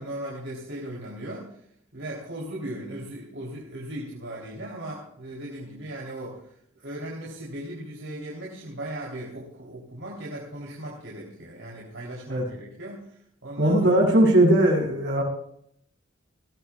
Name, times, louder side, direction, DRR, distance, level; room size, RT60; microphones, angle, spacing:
voice 1, 0.0-1.5 1.9-6.4 6.8-13.2 13.4-13.8, right 1 dB, 80° right, -4 dB, 3.5 m, -37 dB
voice 2, 13.6-15.2, right 1 dB, 65° right, -3 dB, 7.8 m, -19 dB
20.0 x 17.5 x 2.4 m, 0.71 s
head